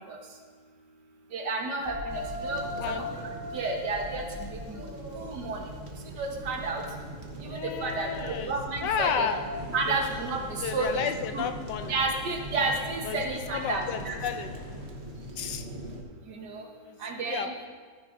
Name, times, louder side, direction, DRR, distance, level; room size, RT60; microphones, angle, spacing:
voice 1, 1.3-4.9 5.2-5.6 6.2-6.8 7.4-9.3 9.7-11.5 11.9-14.2 16.3-16.7 17.0-17.6, right 3 dB, 70° right, 2 dB, 1.7 m, -32 dB
sound 1, 1.8-9.7, left 1 dB, 10° right, 1.8 m, -40 dB
sound 2, 2.1-16.0, right 1 dB, 40° right, 1.2 m, -42 dB
voice 2, 7.4-8.5 8.8-9.4 9.9-10.0 10.6-11.9 13.0-13.2 13.5-14.5 15.4-15.7 16.8-17.0 17.2-17.7, left 7 dB, 75° left, 7 dB, 1.2 m, -32 dB
sound 3, 9.5-14.9, left 2 dB, 40° left, 1.8 m, -46 dB
14.5 x 9.7 x 2.6 m, 1.5 s
omnidirectional pair, 1.9 m